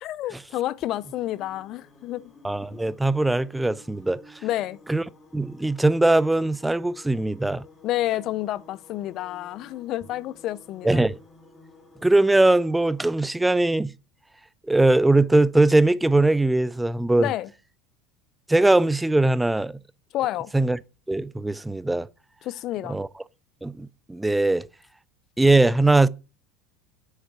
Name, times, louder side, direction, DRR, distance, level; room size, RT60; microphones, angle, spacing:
voice 1, 0.0-2.3 4.4-4.8 7.8-11.1 17.2-17.5 20.1-20.5 22.4-23.0, left 14 dB, 50° left, 0.5 m, -29 dB
sound 1, 0.9-13.1, left 2 dB, 15° left, 1.8 m, -52 dB
voice 2, 2.4-4.2 4.9-5.0 5.3-7.6 10.8-11.2 12.0-13.9 14.7-17.3 18.5-19.8 20.5-20.8 21.1-22.1 22.9-23.1 23.6-24.7 25.4-26.1, right 2 dB, 5° right, 0.4 m, -20 dB
6.5 x 4.5 x 6.0 m
supercardioid pair, 105°, 0 cm